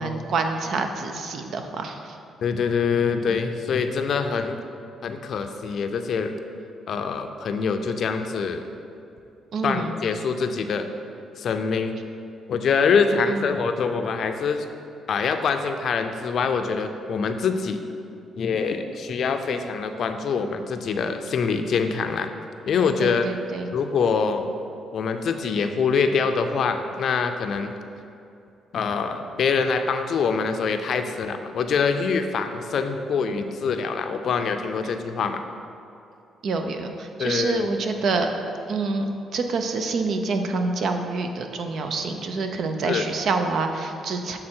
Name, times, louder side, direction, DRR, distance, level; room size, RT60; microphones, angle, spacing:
voice 1, 0.0-2.2 9.5-10.0 13.3-13.4 23.0-23.7 36.4-38.3 38.7-44.4, right 3 dB, 65° right, 6 dB, 0.5 m, -27 dB
voice 2, 2.4-4.6 5.0-6.3 6.9-8.7 9.6-10.9 11.4-11.9 12.5-14.7 15.1-17.8 18.4-22.3 22.7-23.3 23.7-24.5 24.9-27.7 28.7-35.4 37.2-37.7 42.9-43.0, left 5 dB, 60° left, 7 dB, 0.4 m, -24 dB
7.4 x 3.8 x 4.4 m, 2.7 s
cardioid pair, 90°, 0 cm